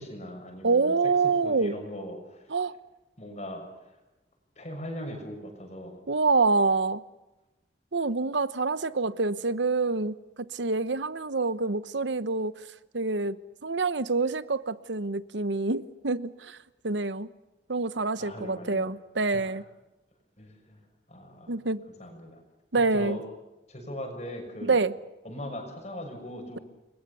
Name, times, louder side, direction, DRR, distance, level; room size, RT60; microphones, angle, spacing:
voice 1, 0.0-0.9 1.4-2.6 3.2-4.0 4.6-6.0 18.2-18.9 19.2-19.6 20.4-20.8 21.1-21.5 22.0-22.4 22.8-23.2 23.7-24.8 25.2-26.6, equal, 40° left, 3 dB, 6.6 m, -40 dB
voice 2, 0.6-1.8 2.5-2.7 6.1-7.0 7.9-12.7 12.9-13.4 13.6-16.6 16.8-17.3 17.7-19.6 21.5-21.8 22.7-23.2 24.6-24.9, right 3 dB, 85° right, 15 dB, 1.0 m, -26 dB
29.0 x 22.0 x 7.0 m, 1.0 s
head